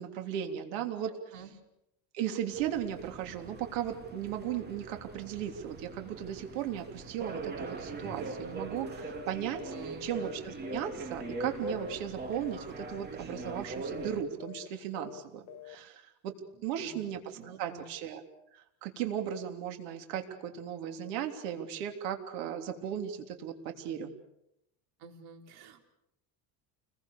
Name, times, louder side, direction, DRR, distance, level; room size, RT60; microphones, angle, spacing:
voice 1, 0.0-1.2 2.1-9.7 10.0-16.3 16.6-18.2 18.5-24.1, right 9 dB, 80° right, 5 dB, 3.5 m, -36 dB
sound 1, 2.5-14.2, right 3 dB, 25° right, 2.6 m, -41 dB
sound 2, 9.0-9.3 9.6-9.8 10.1-11.5 11.7-12.0 12.2-12.5 12.8-13.1 13.3-13.6 13.9-14.1 14.4-14.7 14.9-15.2 15.5-15.8, left 16 dB, 60° left, 1.0 m, -47 dB
voice 2, 9.7-10.1 16.8-16.9 17.3-17.8 25.0-25.8, right 6 dB, 65° right, 4 dB, 4.0 m, -48 dB
29.5 x 21.5 x 6.9 m, 0.84 s
cardioid pair, 160°, 41 cm